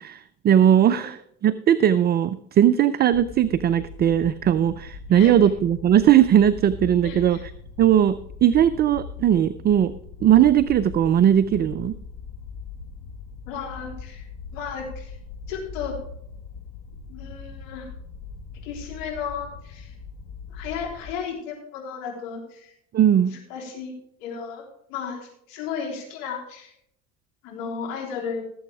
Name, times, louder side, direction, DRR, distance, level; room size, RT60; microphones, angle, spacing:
voice 1, 0.0-7.4 7.8-9.9 10.2-11.9 22.9-23.3, right 10 dB, 25° right, 15 dB, 0.4 m, -19 dB
sound 1, 3.1-21.1, left 5 dB, 50° left, 1.6 m, -40 dB
voice 2, 7.0-7.4 13.5-14.3 14.5-15.1 15.5-15.9 17.1-17.9 18.6-19.9 20.5-22.7 23.3-23.9 24.2-24.6 24.9-26.7 27.4-28.4, left 6 dB, 70° left, -1 dB, 3.7 m, -34 dB
17.0 x 7.8 x 3.5 m, 0.73 s
hypercardioid pair, 65°, 42 cm